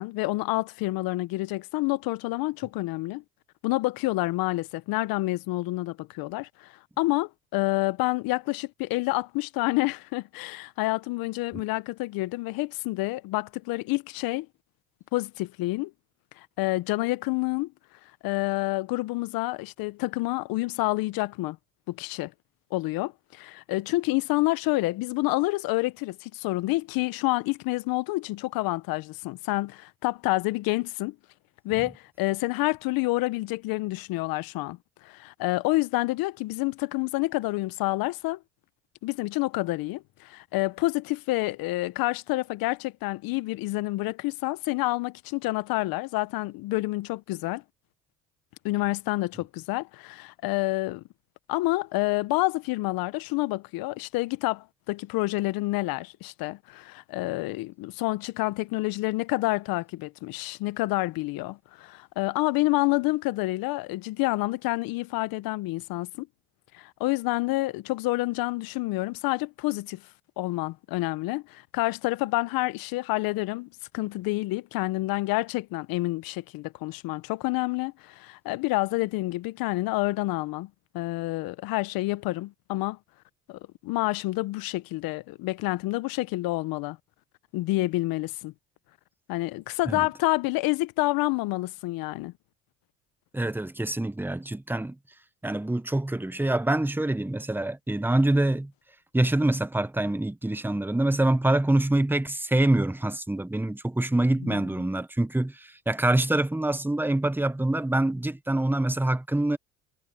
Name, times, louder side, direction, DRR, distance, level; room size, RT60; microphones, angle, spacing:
voice 1, 0.0-3.2 3.6-14.5 15.1-15.9 16.4-17.7 18.2-21.6 21.9-22.3 22.7-31.2 31.6-34.8 35.0-38.4 39.0-47.6 48.6-51.0 51.5-66.3 66.7-70.0 70.4-73.7 73.9-83.0 83.5-87.0 87.5-88.5 89.3-92.3 104.4-104.6, left 20 dB, 65° left, 1.1 m, -28 dB
voice 2, 93.3-95.0 95.4-98.7 99.1-109.6, right 1 dB, 5° right, 1.2 m, -25 dB
supercardioid pair, 75°, 37 cm